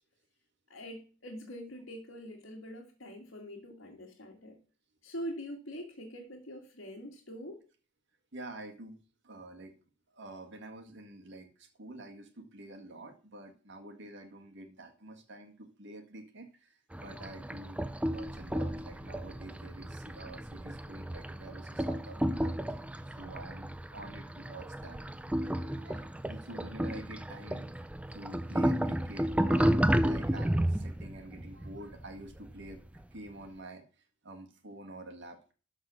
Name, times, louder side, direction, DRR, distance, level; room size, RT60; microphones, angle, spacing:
voice 1, 0.7-4.6 5.0-7.6, equal, 65° left, -3 dB, 2.0 m, -44 dB
voice 2, 8.3-9.0 9.2-9.7 10.1-17.8 18.0-25.1 25.5-27.9 28.1-32.8 33.1-35.5, right 2 dB, 60° right, 6 dB, 1.8 m, -48 dB
sound 1, 16.9-33.0, right 1 dB, 5° right, 0.4 m, -32 dB
12.5 x 4.2 x 6.2 m, 0.37 s
head